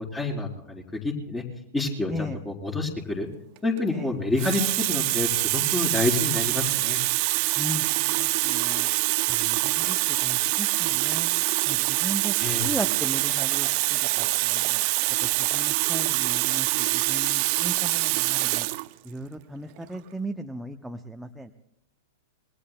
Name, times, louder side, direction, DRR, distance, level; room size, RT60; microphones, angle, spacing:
voice 1, 0.0-1.4 1.7-3.3 3.6-7.0 12.4-12.7, left 3 dB, 15° left, 1 dB, 3.9 m, -28 dB
Water tap faucet, 3.6-3.8 4.4-18.9 19.8-19.9, right 22 dB, 50° right, 0.7 m, -25 dB
voice 2, 7.6-8.9 9.3-11.3 11.7-14.8 15.2-18.7 19.0-21.5, right 1 dB, 5° right, 4 dB, 0.8 m, -36 dB
27.0 x 21.5 x 2.2 m, 0.75 s
figure-of-eight pair, 100°, 0 cm